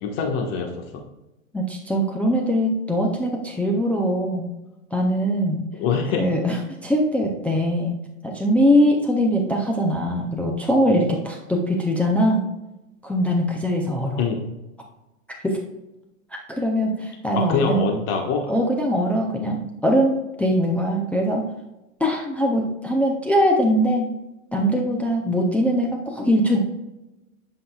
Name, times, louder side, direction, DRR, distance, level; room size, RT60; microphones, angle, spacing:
voice 1, 0.0-0.8 5.8-6.2 14.2-14.4 17.3-18.5, left 5 dB, 40° left, 1 dB, 1.4 m, -24 dB
voice 2, 1.5-4.5 4.9-5.6 6.2-8.0 8.2-12.4 13.0-14.2 15.4-15.6 16.5-17.9 18.5-21.5 22.0-24.1 24.5-26.6, equal, 5° left, 0 dB, 0.4 m, -21 dB
11.0 x 5.5 x 2.3 m, 0.98 s
hypercardioid pair, 130°, 42 cm